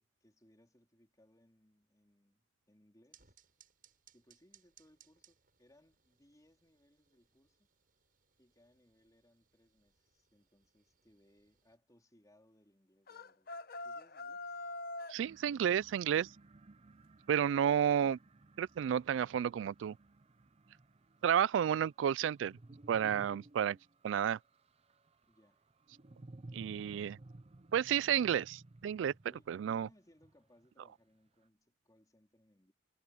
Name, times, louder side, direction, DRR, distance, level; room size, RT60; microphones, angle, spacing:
voice 1, 0.0-3.4 4.1-7.7 8.4-13.5 13.8-14.6 25.3-25.6 29.3-32.7, left 1 dB, 20° left, 3.8 m, -68 dB
sound 1, 3.1-11.8, right 9 dB, 50° right, 7.5 m, -69 dB
sound 2, 13.1-15.2, left 2 dB, 55° left, 0.9 m, -43 dB
voice 2, 15.1-16.3 17.3-18.2 18.6-20.0 21.2-22.6 22.9-23.8 24.0-24.4 26.5-27.2 27.7-28.4 28.8-29.1 29.5-29.9, right 9 dB, 80° right, 0.3 m, -31 dB
sound 3, 15.2-30.7, right 2 dB, 35° right, 0.6 m, -57 dB
head